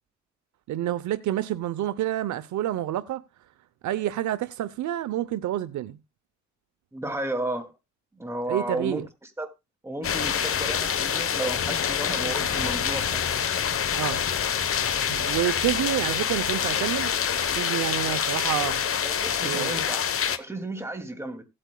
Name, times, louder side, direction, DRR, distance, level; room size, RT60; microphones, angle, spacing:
voice 1, 0.7-3.2 3.8-6.0 8.5-9.1 14.0-14.2 15.1-17.1 17.6-18.8 19.4-19.8, right 13 dB, 75° right, 0.8 m, -28 dB
voice 2, 6.9-7.7 8.1-9.0 9.4-9.5 9.8-13.2 19.0-20.0 20.4-21.4, right 1 dB, 10° right, 2.4 m, -33 dB
sound 1, 10.0-20.4, left 8 dB, 45° left, 1.0 m, -26 dB
17.0 x 8.8 x 2.3 m
cardioid pair, 90°, 30 cm